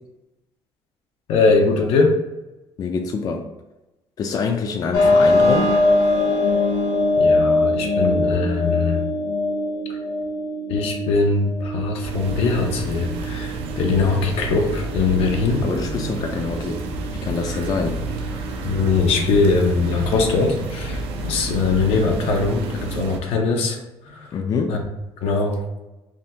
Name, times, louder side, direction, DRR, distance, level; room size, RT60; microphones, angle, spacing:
voice 1, 1.3-2.1 7.2-9.0 10.7-15.6 18.6-23.8 24.1-24.3 24.7-24.8 25.2-25.6, left 4 dB, 80° left, 2 dB, 0.6 m, -21 dB
voice 2, 2.8-3.4 4.2-5.8 15.6-16.8 17.1-18.5 24.1-24.8, left 5 dB, 40° left, 3 dB, 0.3 m, -26 dB
sound 1, 4.9-20.4, left 2 dB, 60° left, 0.9 m, -23 dB
sound 2, 12.0-23.2, right 3 dB, 80° right, 0.4 m, -30 dB
3.4 x 2.2 x 2.7 m, 1.0 s
cardioid pair, 125°, 10 cm